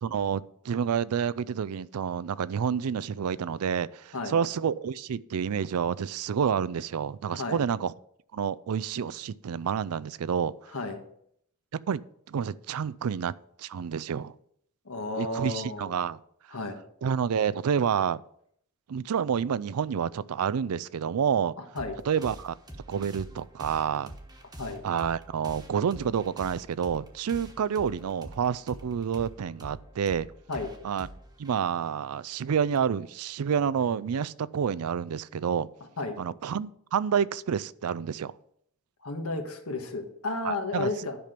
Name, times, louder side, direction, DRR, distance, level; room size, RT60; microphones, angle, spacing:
voice 1, 0.0-7.9 8.3-10.5 11.7-12.0 12.3-14.3 15.1-16.2 17.0-18.2 18.9-21.5 22.1-22.5 22.9-24.1 24.8-30.3 30.8-31.1 31.4-35.7 36.2-38.3 40.4-40.9, right 7 dB, 90° right, 0.4 m, -29 dB
voice 2, 7.3-7.6 10.7-11.0 14.8-15.9 16.5-16.8 21.6-22.0 24.6-24.8 30.5-30.7 36.0-36.2 39.0-41.2, left 2 dB, 85° left, 1.5 m, -33 dB
sound 1, 21.8-32.8, right 1 dB, 20° right, 1.2 m, -46 dB
10.5 x 6.0 x 5.2 m
head